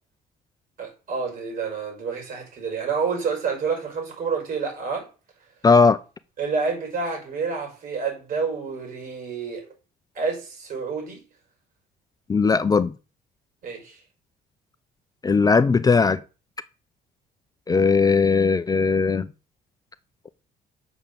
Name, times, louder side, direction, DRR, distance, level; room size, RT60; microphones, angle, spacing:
voice 1, 0.8-5.1 6.4-9.7 10.2-11.2 13.6-14.0, right 5 dB, 55° right, 5.4 m, -28 dB
voice 2, 5.6-6.0 12.3-12.9 15.2-16.2 17.7-19.3, left 4 dB, 20° left, 0.6 m, -18 dB
7.1 x 5.6 x 6.8 m
cardioid pair, 110°, 17 cm